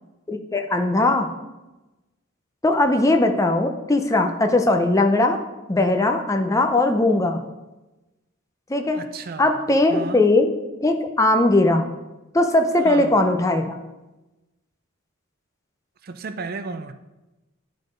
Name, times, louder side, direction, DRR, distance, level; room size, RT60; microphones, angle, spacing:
voice 1, 0.3-1.3 2.6-5.4 5.7-7.4 8.7-9.1 9.4-10.5 10.8-11.9 12.3-13.8, left 2 dB, 15° left, 0.5 m, -19 dB
voice 2, 8.9-9.6 9.9-10.2 12.8-13.1 16.0-16.9, right 4 dB, 45° right, 0.4 m, -33 dB
11.0 x 3.9 x 5.1 m
head